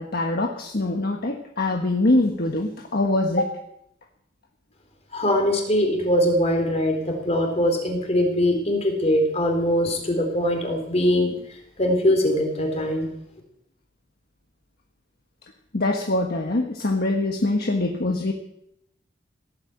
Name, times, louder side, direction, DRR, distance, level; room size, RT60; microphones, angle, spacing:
voice 1, 0.0-3.6 15.7-18.3, left 2 dB, 55° left, 2 dB, 1.4 m, -23 dB
voice 2, 5.1-11.3 11.8-13.1, left 1 dB, 35° left, 3 dB, 3.9 m, -22 dB
17.5 x 8.7 x 8.2 m, 0.78 s
head